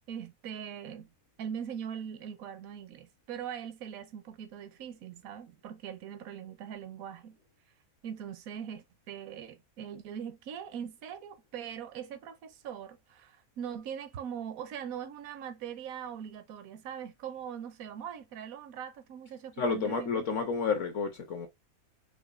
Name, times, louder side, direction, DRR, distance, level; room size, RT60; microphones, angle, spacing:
voice 1, 0.1-1.1 1.4-7.4 8.0-20.2, right 8 dB, 75° right, 1.0 m, -41 dB
voice 2, 19.6-21.5, left 5 dB, 60° left, 1.0 m, -30 dB
5.0 x 2.9 x 2.4 m
omnidirectional pair, 1.6 m